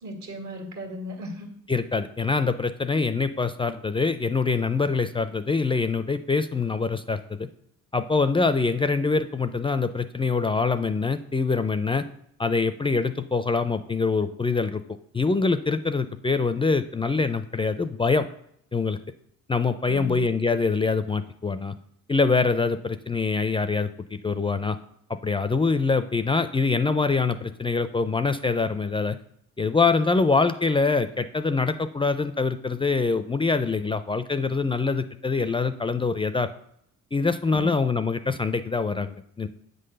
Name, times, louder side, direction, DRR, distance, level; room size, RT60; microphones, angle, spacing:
voice 1, 0.0-1.5 19.9-20.2 37.5-37.7, left 1 dB, 70° right, 4 dB, 1.9 m, -36 dB
voice 2, 1.7-7.5 7.9-12.0 12.4-14.8 15.1-18.3 18.7-19.0 19.5-21.7 22.1-24.8 25.2-29.2 29.6-36.5 37.1-39.5, left 4 dB, 20° left, 11 dB, 0.4 m, -24 dB
8.0 x 3.9 x 6.6 m, 0.71 s
cardioid pair, 90°, 30 cm